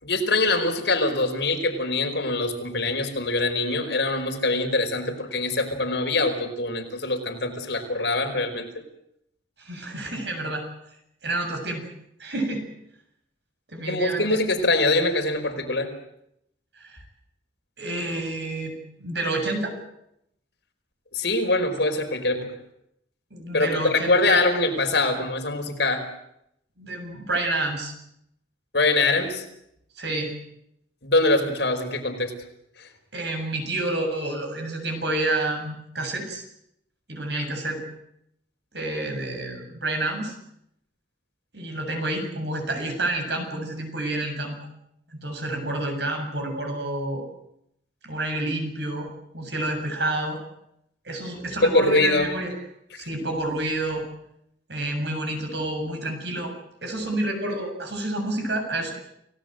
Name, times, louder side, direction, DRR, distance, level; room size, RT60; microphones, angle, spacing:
voice 1, 0.0-8.7 13.9-15.9 21.1-22.5 23.5-26.0 28.7-29.4 31.0-32.3 51.6-52.3, left 2 dB, 70° left, 4 dB, 5.0 m, -23 dB
voice 2, 9.6-10.6 11.2-11.9 12.2-12.7 13.7-14.4 16.8-17.0 17.8-18.7 19.0-19.7 23.3-24.4 26.8-27.9 30.0-30.4 33.1-36.4 37.1-37.8 38.7-40.3 41.5-44.6 45.1-47.2 48.0-49.1 49.3-50.4 51.0-52.5 53.0-54.0 54.7-56.5 56.8-58.9, right 2 dB, 70° right, 4 dB, 7.4 m, -29 dB
29.5 x 18.0 x 7.9 m, 0.77 s
head